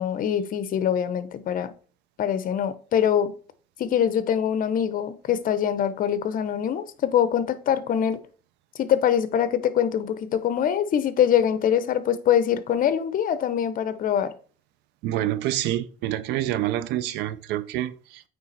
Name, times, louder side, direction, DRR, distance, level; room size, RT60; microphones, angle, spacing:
voice 1, 0.0-1.7 2.2-3.3 3.8-8.2 8.8-14.3, left 9 dB, 55° left, 0.8 m, -23 dB
voice 2, 15.0-18.2, right 13 dB, 85° right, 0.6 m, -27 dB
8.6 x 3.4 x 4.2 m
cardioid pair, 110°, 17 cm